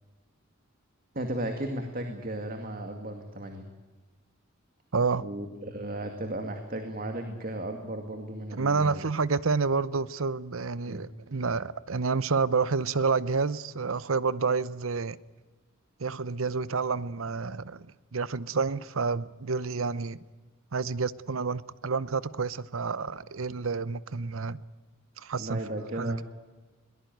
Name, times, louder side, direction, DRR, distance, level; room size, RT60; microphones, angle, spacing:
voice 1, 1.1-3.6 5.2-9.0 10.9-11.1 25.4-26.2, right 1 dB, 45° right, 2.3 m, -35 dB
voice 2, 4.9-5.3 8.5-15.2 16.0-20.2 20.7-24.6 25.2-25.6 26.0-26.2, right 4 dB, 75° right, 0.8 m, -29 dB
22.0 x 19.5 x 9.4 m
head